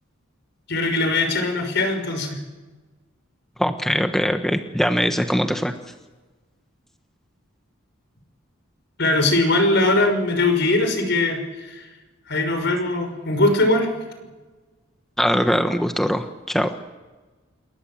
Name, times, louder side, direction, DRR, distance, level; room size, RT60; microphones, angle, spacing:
voice 1, 0.7-2.4 9.0-11.9 12.3-13.9, left 2 dB, 60° left, 6 dB, 6.0 m, -21 dB
voice 2, 3.6-5.7 15.2-16.7, equal, ahead, 6 dB, 1.3 m, -21 dB
29.0 x 22.5 x 7.6 m, 1.2 s
head